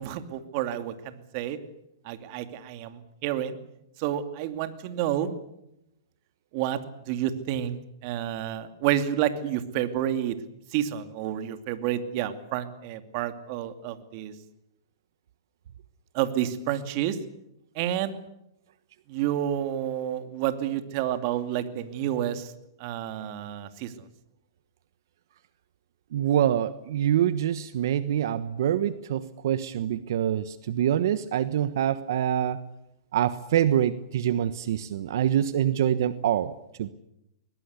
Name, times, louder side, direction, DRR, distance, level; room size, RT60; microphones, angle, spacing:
voice 1, 0.0-1.6 2.0-3.6 4.0-5.3 6.5-6.8 7.1-10.4 10.7-14.3 16.1-17.2 17.8-18.1 19.1-22.5 22.8-23.9, right 11 dB, 45° right, 9 dB, 2.6 m, -29 dB
voice 2, 26.1-32.6 33.1-36.5 36.8-36.9, right 10 dB, 65° right, 14 dB, 1.2 m, -25 dB
22.0 x 21.5 x 8.2 m, 0.82 s
hypercardioid pair, 130°, 2 cm